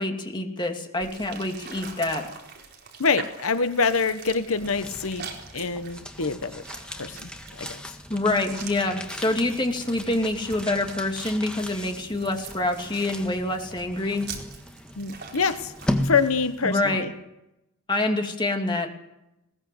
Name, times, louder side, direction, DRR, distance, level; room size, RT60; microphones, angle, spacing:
voice 1, 0.0-2.2 8.1-14.3 16.6-17.1 17.9-18.9, left 2 dB, 20° left, 3 dB, 2.7 m, -26 dB
sound 1, 1.0-17.0, right 5 dB, 50° right, 4.3 m, -44 dB
voice 2, 3.0-6.6 7.0-7.8 15.0-15.7 16.0-17.1, left 5 dB, 70° left, 11 dB, 1.1 m, -26 dB
sound 2, 4.2-16.8, left 1 dB, 5° left, 1.7 m, -36 dB
20.5 x 19.0 x 7.8 m, 0.90 s
head